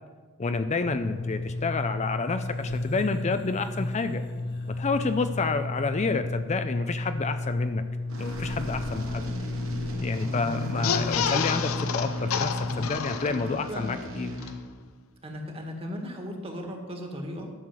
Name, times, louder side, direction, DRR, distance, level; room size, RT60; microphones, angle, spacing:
voice 1, 0.4-4.2 4.7-7.8 8.2-9.3 10.0-12.5 12.8-14.4, left 4 dB, 35° left, 9 dB, 0.4 m, -29 dB
sound 1, 0.9-12.9, left 2 dB, 55° left, 1.3 m, -32 dB
sound 2, 8.1-14.5, equal, 70° right, 1.9 m, -39 dB
sound 3, 10.7-13.7 14.1-14.2 14.4-14.5, left 7 dB, 85° left, 0.6 m, -30 dB
voice 2, 13.2-13.9 15.2-17.5, equal, 30° right, 2 dB, 1.8 m, -37 dB
11.0 x 6.5 x 7.5 m, 1.5 s
head